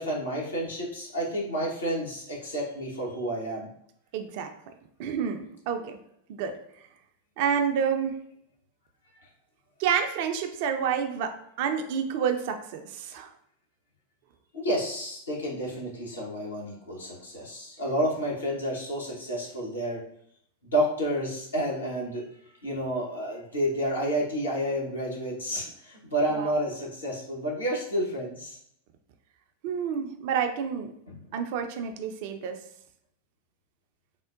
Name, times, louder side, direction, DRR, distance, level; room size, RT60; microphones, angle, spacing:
voice 1, 0.0-3.7 14.5-20.0 20.7-22.3 22.6-28.6 31.1-31.3, right 1 dB, 75° left, -4 dB, 1.0 m, -30 dB
voice 2, 4.1-4.5 5.0-6.0 6.4-6.6 7.4-8.1 9.8-13.3 26.3-26.5 29.6-30.9 31.3-32.6, right 7 dB, 50° right, 6 dB, 0.3 m, -29 dB
3.6 x 2.1 x 2.4 m, 0.71 s
figure-of-eight pair, 90°, 0 cm